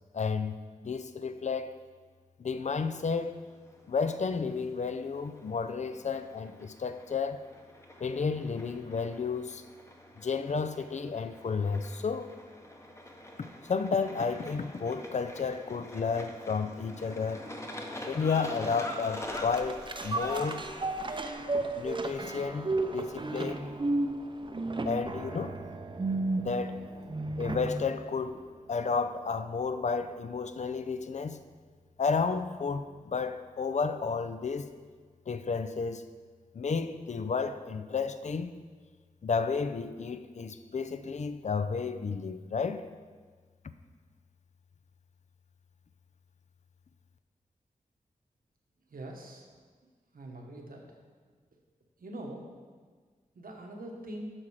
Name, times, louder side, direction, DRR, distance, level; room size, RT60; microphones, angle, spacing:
voice 1, 0.1-0.6 0.8-1.8 2.4-3.4 3.9-7.4 8.0-9.6 10.2-12.3 13.7-17.5 18.1-20.6 21.8-23.7 24.8-25.6 26.4-26.8 27.4-31.4 32.0-34.7 35.3-36.1 36.5-38.5 39.2-42.8, left 5 dB, 55° left, 0.5 m, -32 dB
sound 1, 2.6-21.3, left 1 dB, 20° left, 0.9 m, -45 dB
sound 2, 19.3-27.9 28.3-28.4, right 2 dB, 35° right, 0.6 m, -33 dB
voice 2, 48.9-49.4 50.1-50.9 52.0-52.5 53.3-54.3, right 1 dB, 85° right, 1.3 m, -42 dB
8.8 x 6.0 x 4.9 m
wide cardioid pair, 80°, 14 cm